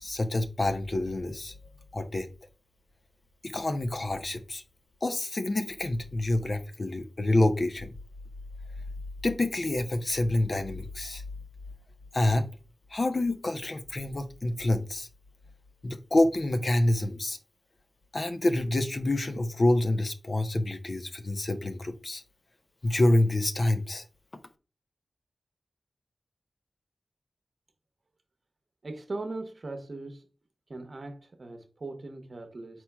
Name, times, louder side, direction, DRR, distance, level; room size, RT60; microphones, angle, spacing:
voice 1, 0.0-1.5 1.9-2.3 3.4-4.6 5.0-7.9 9.2-11.2 12.1-12.5 12.9-15.1 15.8-17.4 18.1-22.2 22.8-24.0, left 1 dB, 50° left, 0.5 m, -27 dB
voice 2, 28.8-30.2 30.7-32.8, right 2 dB, 55° right, 0.9 m, -39 dB
4.4 x 4.4 x 2.2 m
wide cardioid pair, 60°, 0 cm